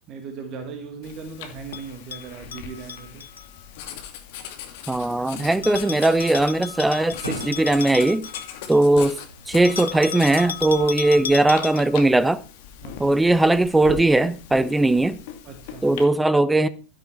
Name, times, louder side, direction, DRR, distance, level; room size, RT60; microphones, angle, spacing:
voice 1, 0.1-3.3 11.1-11.3 12.8-13.2 15.4-15.9, right 5 dB, 35° right, 1.9 m, -38 dB
Writing, 1.0-16.0, left 8 dB, 50° left, 2.4 m, -40 dB
Bell, 1.7-3.5 5.6-8.9 9.6-12.0, left 9 dB, 65° left, 0.7 m, -35 dB
voice 2, 4.9-8.3 8.7-9.2 9.5-12.4 13.0-15.2 15.8-16.7, right 2 dB, 5° right, 0.8 m, -19 dB
sound 1, 5.3-10.4, right 1 dB, 85° right, 1.9 m, -41 dB
12.5 x 11.5 x 4.5 m
figure-of-eight pair, 90°, 0 cm